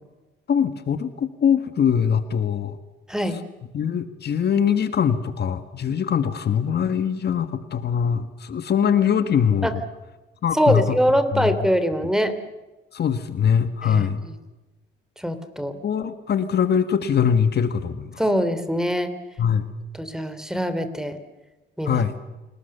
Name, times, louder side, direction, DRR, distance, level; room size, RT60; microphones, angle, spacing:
voice 1, 0.5-2.8 3.7-9.8 10.4-11.0 11.3-11.5 12.9-14.2 15.8-18.2 19.4-19.7 21.8-22.2, left 7 dB, 55° left, 10 dB, 1.8 m, -22 dB
voice 2, 3.1-3.4 9.6-9.7 10.5-12.3 13.8-14.0 15.2-15.8 18.2-19.1 20.0-21.2 21.8-22.0, equal, 5° right, 11 dB, 3.2 m, -23 dB
29.0 x 20.0 x 6.9 m, 1.1 s
cardioid pair, 90°, 20 cm